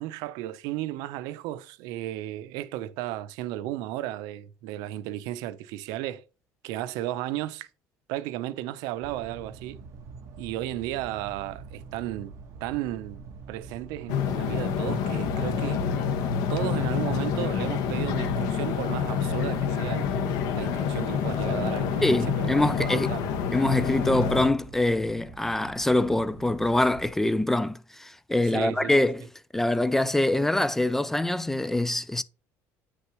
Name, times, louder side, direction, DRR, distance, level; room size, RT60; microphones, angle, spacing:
voice 1, 0.0-6.2 6.6-7.7 8.1-9.8 10.4-12.3 12.6-13.2 13.5-15.8 16.5-23.3 28.4-28.9, right 14 dB, 85° right, 0.7 m, -34 dB
sound 1, 9.0-27.1, right 5 dB, 50° right, 1.4 m, -46 dB
sound 2, 14.1-24.5, left 7 dB, 75° left, 1.3 m, -27 dB
voice 2, 22.0-23.1 23.5-29.2 29.5-32.2, left 1 dB, 5° left, 0.3 m, -24 dB
9.1 x 6.5 x 3.0 m
cardioid pair, 170°, 6 cm